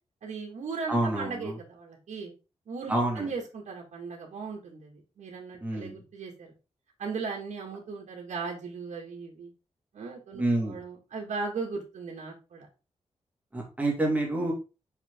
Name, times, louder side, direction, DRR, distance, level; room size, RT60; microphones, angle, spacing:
voice 1, 0.2-2.3 2.7-6.5 7.0-9.5 9.9-12.7, right 4 dB, 80° right, -1 dB, 1.8 m, -37 dB
voice 2, 0.9-1.6 2.9-3.3 5.6-6.0 10.4-10.8 13.5-14.5, right 1 dB, 15° right, -1 dB, 2.2 m, -28 dB
5.9 x 5.1 x 3.7 m, 0.30 s
wide cardioid pair, 170°, 12 cm